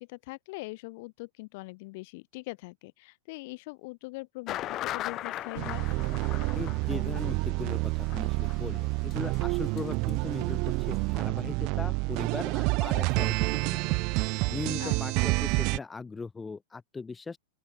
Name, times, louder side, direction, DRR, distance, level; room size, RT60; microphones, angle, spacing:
voice 1, 0.0-5.9 14.8-14.9, left 24 dB, 55° left, 5.4 m, -42 dB
sound 1, 4.5-10.1 10.4-10.5 10.9-11.0, left 14 dB, 35° left, 1.6 m, -38 dB
sound 2, 5.6-15.8, right 27 dB, 50° right, 0.8 m, -28 dB
voice 2, 6.5-14.0 14.5-17.4, left 4 dB, 15° left, 1.7 m, -39 dB
open air
hypercardioid pair, 110°, 0 cm